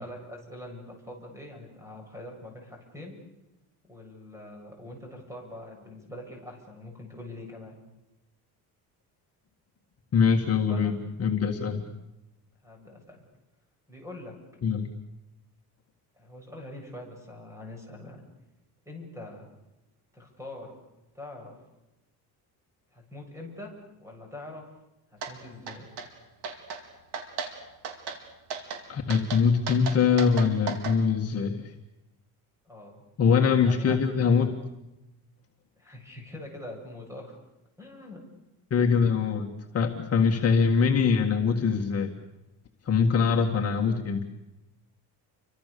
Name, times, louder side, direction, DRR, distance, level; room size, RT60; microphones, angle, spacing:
voice 1, 0.0-3.2 3.8-7.8 10.7-10.9 12.6-13.2 13.9-14.4 16.2-18.2 18.8-19.6 20.1-20.8 21.1-21.5 22.9-24.6 25.1-25.9 32.6-33.0 33.7-34.0 35.8-37.4 37.8-38.2, left 1 dB, 5° right, 2 dB, 7.9 m, -43 dB
voice 2, 10.1-11.8 14.6-14.9 28.9-31.7 33.2-34.6 38.7-39.5 39.7-42.1 42.9-44.2, left 6 dB, 40° left, 2 dB, 1.9 m, -23 dB
sound 1, 25.2-25.3 25.7-26.1 26.4-26.8 27.1-27.5 27.8-28.2 28.5-28.8 29.1-31.0, right 6 dB, 80° right, 4.3 m, -35 dB
29.5 x 25.0 x 6.9 m, 0.96 s
cardioid pair, 150°, 39 cm